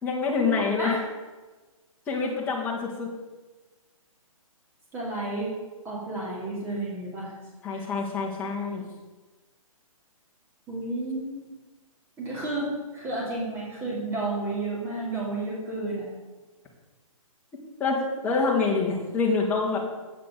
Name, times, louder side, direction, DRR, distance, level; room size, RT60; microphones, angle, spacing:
voice 1, 0.0-0.9 2.1-3.1 7.6-8.8 17.8-19.8, left 4 dB, 10° left, -4 dB, 1.8 m, -26 dB
voice 2, 4.9-5.5 5.8-7.3 7.7-7.8 10.7-11.6 12.2-16.1, right 2 dB, 15° right, -5 dB, 2.7 m, -31 dB
8.2 x 6.6 x 6.7 m, 1.2 s
hypercardioid pair, 155°, 18 cm